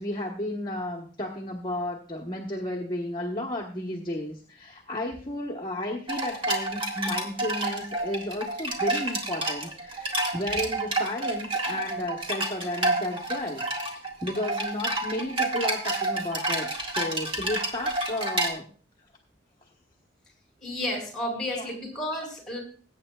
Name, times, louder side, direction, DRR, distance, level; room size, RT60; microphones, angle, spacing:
voice 1, 0.0-18.7 21.5-21.7, left 1 dB, 25° left, -1 dB, 1.2 m, -33 dB
sound 1, 6.1-18.5, right 2 dB, 30° right, 1.8 m, -29 dB
voice 2, 20.6-22.6, left 1 dB, 5° left, -1 dB, 4.7 m, -32 dB
21.0 x 8.9 x 2.3 m, 0.40 s
head